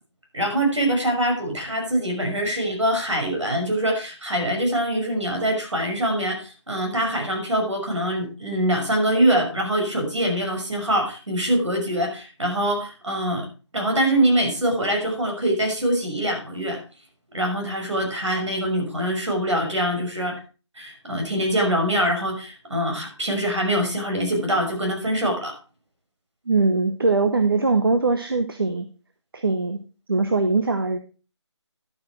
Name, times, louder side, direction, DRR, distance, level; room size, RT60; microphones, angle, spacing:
voice 1, 0.3-13.5 13.7-16.8 17.3-20.4 20.8-25.5, right 1 dB, 80° right, 3 dB, 5.8 m, -24 dB
voice 2, 26.5-28.9 29.3-29.8 30.1-31.0, right 3 dB, 50° right, 8 dB, 0.9 m, -21 dB
11.5 x 8.6 x 4.5 m, 0.34 s
figure-of-eight pair, 175°, 15 cm